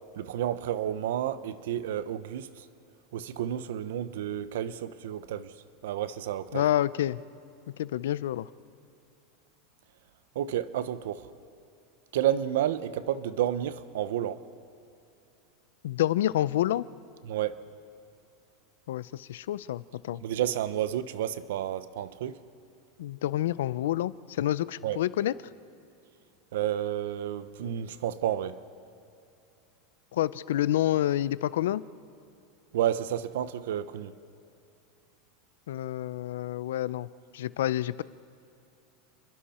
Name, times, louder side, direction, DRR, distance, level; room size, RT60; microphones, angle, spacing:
voice 1, 0.1-2.5 3.1-5.5 5.8-6.6 10.3-11.3 12.1-14.4 17.3-17.6 20.2-22.4 24.8-25.0 26.5-28.6 32.7-34.1, right 11 dB, 80° right, 0.9 m, -30 dB
voice 2, 6.5-7.2 7.8-8.5 15.8-16.9 18.9-20.2 23.0-25.3 30.1-31.8 35.7-37.1 37.3-38.0, left 13 dB, 90° left, 0.6 m, -28 dB
30.0 x 22.0 x 4.4 m
supercardioid pair, 160°, 0 cm